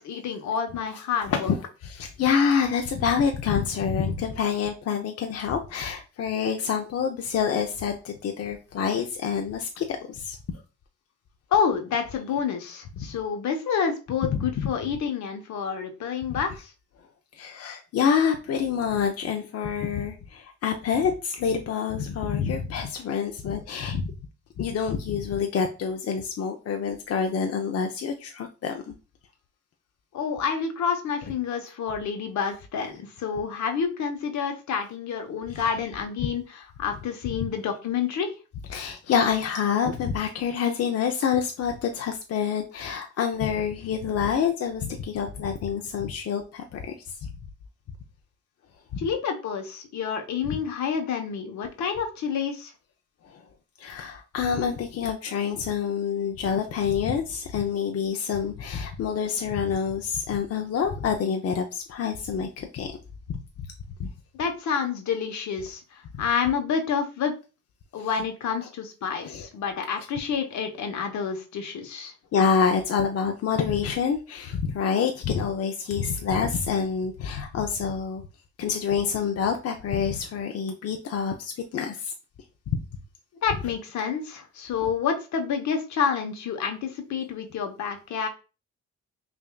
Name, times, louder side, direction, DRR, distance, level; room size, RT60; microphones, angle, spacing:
voice 1, 0.0-1.5 11.5-16.7 30.1-38.3 49.0-52.7 64.4-67.3 67.9-72.1 83.4-88.3, left 6 dB, 70° left, 5 dB, 1.0 m, -28 dB
voice 2, 1.8-10.4 13.0-13.1 14.2-14.7 16.3-16.4 17.3-24.1 24.6-28.9 35.5-35.7 38.7-47.3 50.5-50.6 53.2-53.4 53.8-62.9 63.3-63.7 64.0-64.1 68.0-68.1 69.2-69.5 72.3-78.2 78.6-82.1 82.7-82.8, left 7 dB, 55° left, 4 dB, 0.6 m, -27 dB
5.6 x 2.6 x 2.3 m, 0.32 s
cardioid pair, 90°, 30 cm